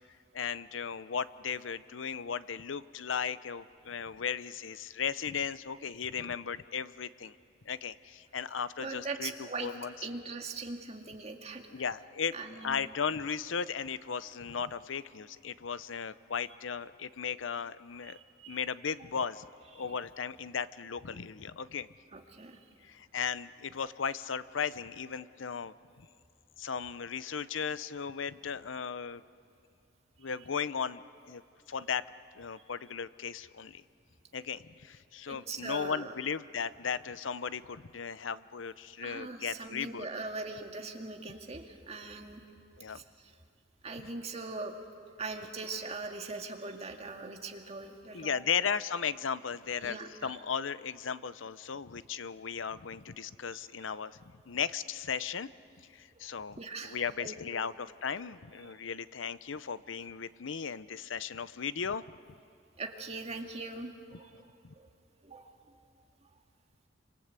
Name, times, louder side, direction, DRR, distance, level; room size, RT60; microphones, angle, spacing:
voice 1, 0.3-7.3 7.7-9.9 11.7-12.3 12.6-18.2 18.5-19.5 19.7-21.9 22.8-26.1 26.6-29.2 30.2-31.4 31.7-32.0 32.4-33.8 34.3-40.1 42.8-43.0 48.1-54.2 54.5-55.5 55.9-62.0 64.6-64.7, left 6 dB, 80° left, 15 dB, 0.7 m, -36 dB
voice 2, 8.8-9.7 10.0-11.7 12.3-12.9 18.0-18.6 19.7-20.0 22.1-22.6 35.3-36.1 39.0-42.4 42.9-43.3 43.8-44.7 45.2-48.3 49.8-50.4 53.9-54.0 56.1-56.3 56.6-57.4 58.2-58.3 58.6-58.8 62.8-64.5 64.8-64.9 65.2-65.5, right 3 dB, 35° right, 3 dB, 2.0 m, -41 dB
27.5 x 26.0 x 8.2 m, 2.4 s
head